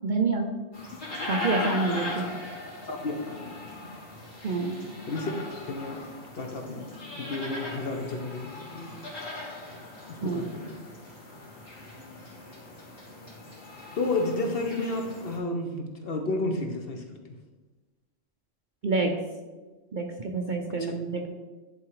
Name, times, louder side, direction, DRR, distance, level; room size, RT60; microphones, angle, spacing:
voice 1, 0.0-0.5 1.3-2.3 4.4-4.8 10.2-10.4 18.8-19.2 19.9-21.3, right 3 dB, 45° right, 2 dB, 0.7 m, -27 dB
sound 1, 0.7-15.4, left 2 dB, 80° left, 2.8 m, -39 dB
voice 2, 2.9-3.9 4.4-4.5 5.1-6.1 6.3-8.9 10.1-10.8 14.0-17.0 20.8-20.9, left 2 dB, 50° left, 3 dB, 1.1 m, -32 dB
10.5 x 3.7 x 4.8 m, 1.3 s
omnidirectional pair, 1.3 m